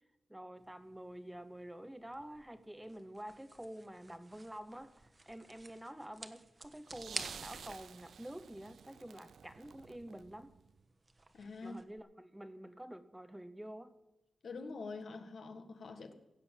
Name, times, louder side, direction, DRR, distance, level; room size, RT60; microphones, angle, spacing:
voice 1, 0.3-4.9 5.3-10.5 11.6-13.9, right 1 dB, 10° right, 11 dB, 0.8 m, -48 dB
sound 1, 0.6-11.8, right 2 dB, 30° right, 1.2 m, -52 dB
sound 2, 6.6-10.8 12.0-12.1, right 7 dB, 90° right, 0.4 m, -52 dB
voice 2, 11.3-11.8 14.4-16.1, left 3 dB, 70° left, 7 dB, 1.6 m, -45 dB
16.5 x 6.7 x 8.9 m, 0.97 s
wide cardioid pair, 95°, 0 cm